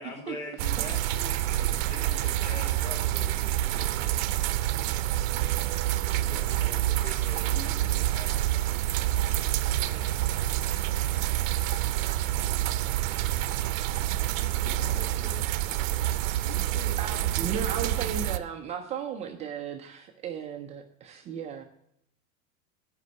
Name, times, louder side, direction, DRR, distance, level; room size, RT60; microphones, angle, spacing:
voice 1, 0.0-4.4 6.0-8.4, left 3 dB, 90° left, 1 dB, 4.1 m, -43 dB
sound 1, 0.6-18.4, right 14 dB, 65° right, 0.7 m, -27 dB
voice 2, 1.3-1.6 2.1-2.3 3.3-3.5 17.0-21.6, right 7 dB, 15° right, 3 dB, 0.3 m, -36 dB
voice 3, 14.1-15.5 16.4-18.1, left 5 dB, 40° left, 5 dB, 1.2 m, -46 dB
9.5 x 5.3 x 6.2 m, 0.73 s
supercardioid pair, 150°, 42 cm